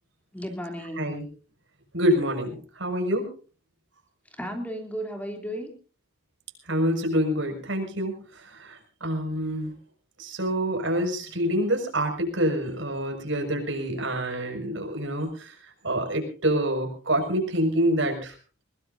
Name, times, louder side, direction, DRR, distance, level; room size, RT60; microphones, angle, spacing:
voice 1, 0.3-1.0 4.4-5.7, equal, 10° left, 3 dB, 3.1 m, -34 dB
voice 2, 1.0-1.3 1.9-3.3 6.6-9.7 10.2-15.6 15.8-18.4, right 1 dB, 75° right, 4 dB, 6.0 m, -27 dB
21.5 x 21.5 x 2.7 m, 0.39 s
head